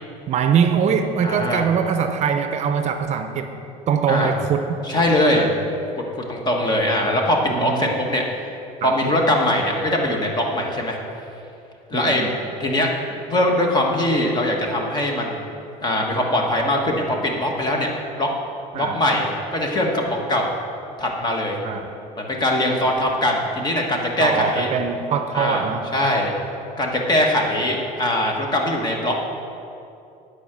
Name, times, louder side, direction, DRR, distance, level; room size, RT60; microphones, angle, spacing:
voice 1, 0.3-3.5 3.9-4.7 5.3-5.5 7.5-7.9 8.8-9.0 11.9-12.4 18.7-19.0 21.6-21.9 24.2-25.8, right 7 dB, 45° right, 7 dB, 0.6 m, -22 dB
voice 2, 1.2-1.6 4.1-4.3 4.8-5.5 6.1-8.2 8.8-11.0 11.9-12.3 12.6-12.9 13.3-15.5 15.8-17.9 18.2-18.3 18.7-20.5 21.0-21.6 22.2-24.7 25.3-25.7 25.9-26.3 26.8-29.1, left 1 dB, 25° left, 1 dB, 1.4 m, -21 dB
9.7 x 4.9 x 7.5 m, 2.7 s
cardioid pair, 125°, 16 cm